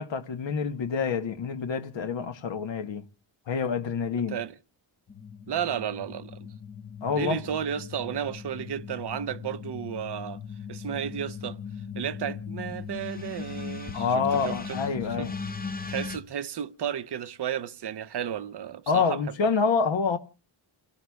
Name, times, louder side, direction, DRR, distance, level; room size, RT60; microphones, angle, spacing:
voice 1, 0.0-3.0 3.5-4.4 7.0-7.4 13.9-15.3 18.9-20.2, left 5 dB, 65° left, 1.1 m, -27 dB
sound 1, 5.1-16.2, left 6 dB, 20° left, 0.8 m, -38 dB
voice 2, 5.5-6.5 7.0-10.4 10.7-11.6 12.0-14.8 15.2-15.3 15.9-19.2, right 9 dB, 55° right, 0.7 m, -33 dB
29.5 x 17.5 x 2.3 m
wide cardioid pair, 170°, 49 cm